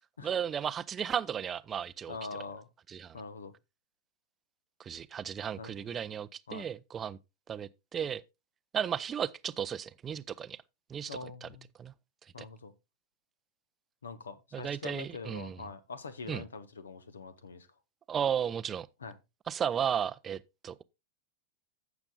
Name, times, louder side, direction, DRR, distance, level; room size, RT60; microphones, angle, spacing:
voice 1, 0.2-2.2 2.9-3.2 4.8-7.2 7.5-8.2 8.7-10.6 10.9-11.5 11.8-11.9 12.4-12.5 14.5-15.6 16.3-16.4 18.1-18.9 19.5-20.8, right 8 dB, 25° right, 0.5 m, -34 dB
voice 2, 2.1-2.7 3.1-3.5 5.6-6.0 6.5-6.7 11.1-11.7 12.3-12.7 14.0-17.7 19.0-19.1, left 4 dB, 70° left, 1.2 m, -44 dB
15.5 x 7.1 x 2.4 m
figure-of-eight pair, 90°, 0 cm